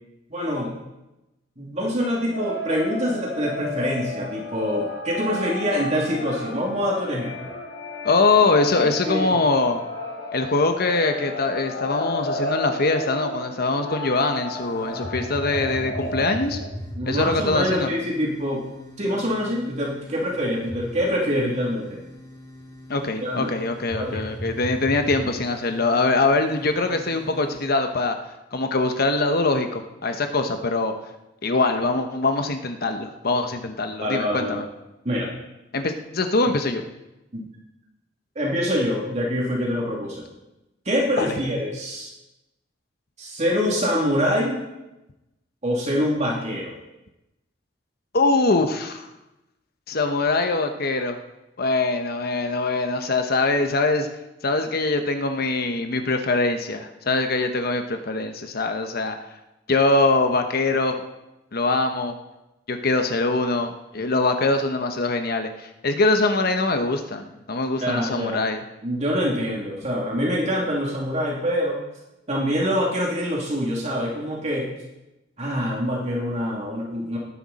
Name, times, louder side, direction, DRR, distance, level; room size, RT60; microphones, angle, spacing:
voice 1, 0.3-0.7 1.6-7.5 9.1-9.3 17.0-18.7 19.0-22.0 23.2-23.5 24.0-24.2 34.0-34.6 35.0-35.3 37.3-37.5 38.3-40.2 40.8-42.1 43.2-44.6 45.6-46.8 67.8-68.4 68.8-71.8 72.3-74.7 75.4-77.2, equal, 40° right, -3 dB, 2.9 m, -25 dB
sound 1, 2.3-16.7, left 2 dB, 85° left, 3.7 m, -32 dB
voice 2, 8.0-9.8 10.3-16.6 17.1-17.9 22.9-28.2 28.5-30.9 31.4-34.7 35.7-36.8 41.2-41.3 48.1-49.1 49.9-51.2 51.6-54.1 54.4-59.2 59.7-61.0 61.5-62.2 62.7-68.6, left 3 dB, 55° left, 6 dB, 1.1 m, -23 dB
sound 2, 14.5-27.7, equal, 20° left, 2.5 m, -38 dB
19.0 x 10.5 x 4.2 m, 0.96 s
head